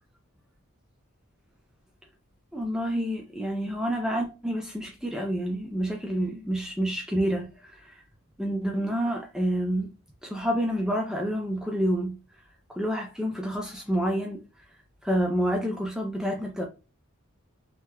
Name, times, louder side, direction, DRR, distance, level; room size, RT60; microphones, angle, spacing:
voice 1, 2.5-7.9 8.4-9.9 10.2-12.2 12.7-14.4 15.0-16.7, equal, 5° right, 0.5 m, -28 dB
3.3 x 2.7 x 2.3 m
head